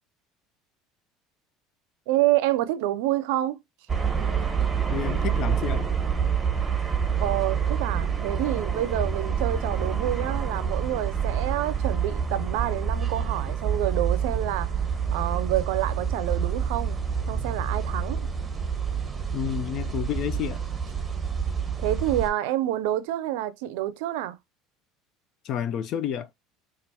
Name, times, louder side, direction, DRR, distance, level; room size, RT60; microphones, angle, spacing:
voice 1, 2.1-3.6 7.2-14.8 15.1-17.0 17.3-18.2 21.8-24.4, right 14 dB, 80° right, 0.5 m, -28 dB
sound 1, 3.9-22.3, right 7 dB, 20° right, 0.8 m, -27 dB
voice 2, 4.9-5.9 19.3-20.6 25.4-26.3, left 10 dB, 55° left, 0.5 m, -30 dB
4.4 x 2.4 x 2.8 m
supercardioid pair, 95°, 0 cm